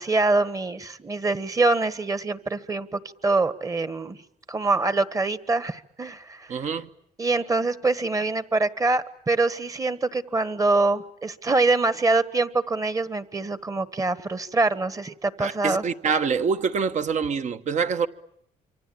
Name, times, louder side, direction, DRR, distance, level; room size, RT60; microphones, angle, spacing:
voice 1, 0.0-4.2 4.5-6.6 7.2-15.8, right 3 dB, 20° right, 1.5 m, -24 dB
voice 2, 6.5-6.9 15.4-18.1, right 5 dB, 50° right, 1.4 m, -25 dB
27.0 x 25.0 x 8.6 m
cardioid pair, 110°, 15 cm